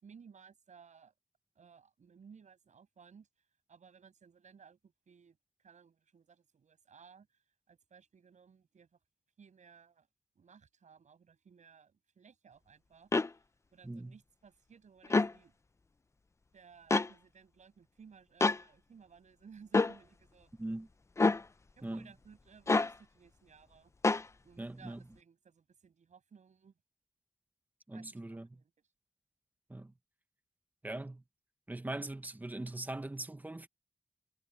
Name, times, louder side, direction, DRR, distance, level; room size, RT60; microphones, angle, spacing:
voice 1, 0.0-1.1 1.6-3.3 3.7-5.4 5.6-7.3 7.7-9.0 9.4-10.1 10.4-13.4 13.7-15.5 16.5-20.5 21.8-23.9 24.4-26.7 27.9-28.7, right 6 dB, 80° right, 6.9 m, -59 dB
sound 1, 13.1-13.3 15.0-15.3 16.9-17.1 18.4-18.6 19.7-19.9 21.2-21.4 22.7-22.9 24.0-24.3, left 3 dB, 25° left, 0.5 m, -26 dB
voice 2, 24.6-25.0 27.9-28.6 29.7-29.9 30.8-31.2 31.7-33.7, right 2 dB, 15° right, 0.8 m, -41 dB
wide cardioid pair, 175°, 12 cm